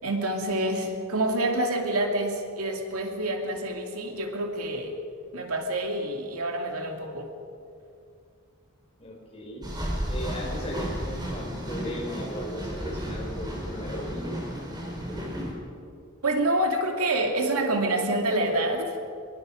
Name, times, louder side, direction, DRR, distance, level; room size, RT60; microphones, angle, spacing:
voice 1, 0.0-5.0 5.3-7.3 16.2-19.1, right 1 dB, 85° right, 2 dB, 2.6 m, -27 dB
voice 2, 9.0-9.7 10.1-14.4, equal, 25° left, -1 dB, 4.7 m, -37 dB
sound 1, 9.6-15.5, equal, 20° right, 4.2 m, -33 dB
23.5 x 22.0 x 5.2 m, 2.5 s
head